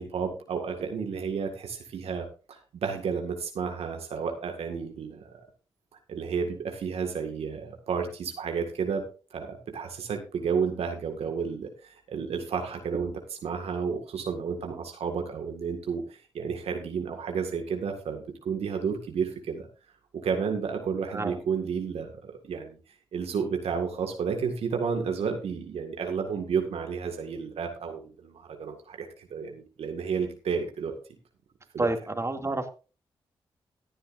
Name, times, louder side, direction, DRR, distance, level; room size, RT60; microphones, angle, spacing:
voice 1, 0.0-5.4 6.1-19.7 20.1-22.8 23.1-30.9 31.7-31.9, right 6 dB, 75° right, 4 dB, 1.9 m, -31 dB
voice 2, 31.8-32.7, right 2 dB, 25° right, 4 dB, 2.5 m, -29 dB
17.0 x 10.0 x 2.6 m, 0.33 s
supercardioid pair, 50°, 10 cm